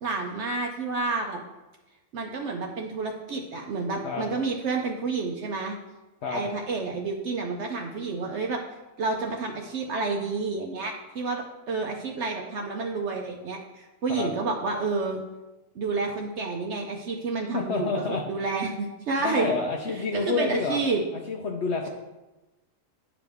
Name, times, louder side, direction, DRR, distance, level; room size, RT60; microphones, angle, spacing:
voice 1, 0.0-1.4 2.1-5.8 6.3-8.6 9.0-15.2 15.8-19.5 19.9-21.0, right 4 dB, 65° right, 2 dB, 0.9 m, -30 dB
voice 2, 17.5-18.2 19.2-20.8 21.3-21.9, left 4 dB, 65° left, 0 dB, 1.0 m, -28 dB
9.7 x 4.9 x 3.5 m, 1.1 s
omnidirectional pair, 1.4 m